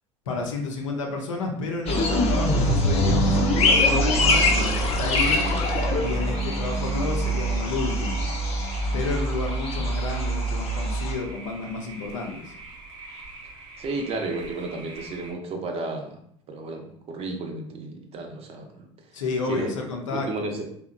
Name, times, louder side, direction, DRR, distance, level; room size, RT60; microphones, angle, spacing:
voice 1, 0.3-5.4 6.0-8.2 8.9-12.5 19.1-20.5, left 4 dB, 80° left, 2 dB, 0.5 m, -31 dB
sound 1, 1.9-11.1, equal, 40° left, 0.6 m, -23 dB
voice 2, 5.3-5.7 13.8-16.2 16.5-18.9 19.4-19.7 20.1-20.7, right 3 dB, 40° right, 3 dB, 0.5 m, -33 dB
sound 2, 5.3-15.3, right 2 dB, 80° right, 0.8 m, -43 dB
2.8 x 2.1 x 2.4 m, 0.66 s
hypercardioid pair, 75°, 16 cm